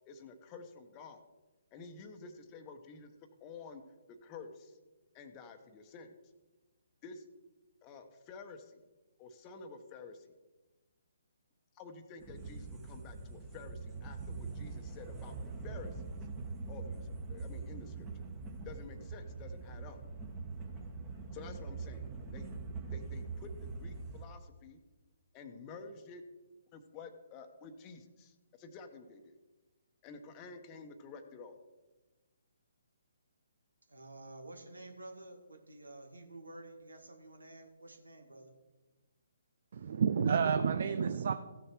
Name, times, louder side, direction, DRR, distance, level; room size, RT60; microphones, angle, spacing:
voice 1, 0.1-1.2 1.7-3.1 3.4-3.8 4.1-4.8 5.1-6.1 7.0-7.2 7.8-8.8 9.2-10.3 11.7-15.4 15.6-16.0 16.7-18.1 18.6-20.0 21.3-22.5 22.9-23.5 23.8-24.8 25.3-26.2 26.7-29.3 30.0-31.6, left 4 dB, 25° left, 7 dB, 1.1 m, -50 dB
sound 1, 12.2-24.2, right 4 dB, 20° right, 1.6 m, -43 dB
voice 2, 33.9-38.5, right 2 dB, 85° right, 4 dB, 2.1 m, -51 dB
voice 3, 39.7-41.3, right 6 dB, 55° right, 10 dB, 0.5 m, -29 dB
15.5 x 6.6 x 4.6 m, 1.2 s
figure-of-eight pair, 135°, 0 cm